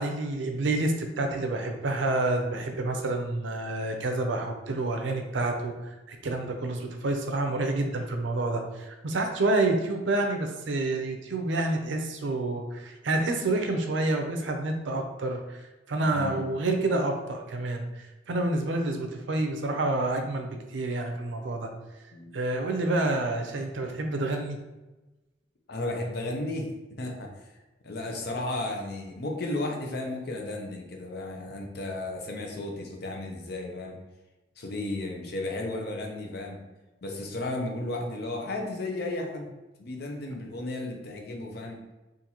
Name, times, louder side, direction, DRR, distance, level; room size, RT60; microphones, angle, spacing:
voice 1, 0.0-5.7 6.1-21.7 22.3-24.6, right 2 dB, 75° right, 4 dB, 0.5 m, -28 dB
voice 2, 16.0-16.5 22.1-22.3 25.7-26.7 27.0-27.5 27.8-33.9 34.6-36.6 37.0-39.5 39.8-41.8, left 2 dB, 60° left, 1 dB, 0.6 m, -34 dB
3.9 x 2.5 x 2.9 m, 1.1 s
head